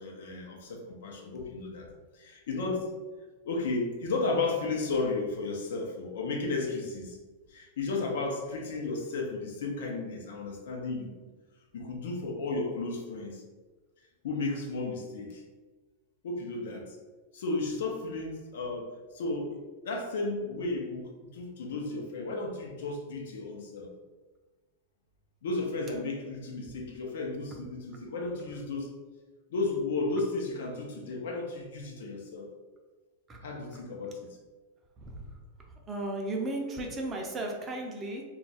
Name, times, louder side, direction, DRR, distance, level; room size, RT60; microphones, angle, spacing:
voice 1, 0.0-1.9 2.1-3.0 3.4-7.2 7.5-11.2 11.7-13.4 14.2-15.4 16.2-17.0 17.3-19.6 19.8-23.9 25.4-29.0 29.5-32.5 33.4-34.4, left 3 dB, 80° left, 1 dB, 0.6 m, -33 dB
voice 2, 35.0-35.4 35.9-38.2, right 2 dB, 20° right, 1 dB, 0.5 m, -35 dB
2.4 x 2.3 x 4.0 m, 1.3 s
supercardioid pair, 155°, 0 cm